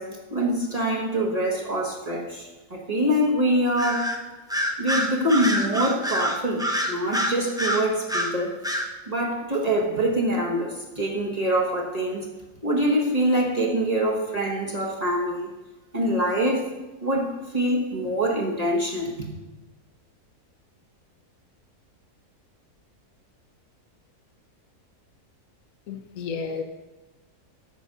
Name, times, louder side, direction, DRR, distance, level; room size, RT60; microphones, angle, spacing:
voice 1, 0.0-4.2 4.8-8.6 9.1-12.3 12.6-15.5 15.9-16.7 17.0-19.1, right 1 dB, 25° right, -1 dB, 1.1 m, -25 dB
Bird vocalization bird call bird song, 3.8-4.2 4.5-8.3 8.6-8.9, equal, 5° right, 0.4 m, -26 dB
voice 2, 25.9-26.6, left 5 dB, 65° left, 4 dB, 1.1 m, -32 dB
8.2 x 6.4 x 6.6 m, 1.1 s
omnidirectional pair, 1.7 m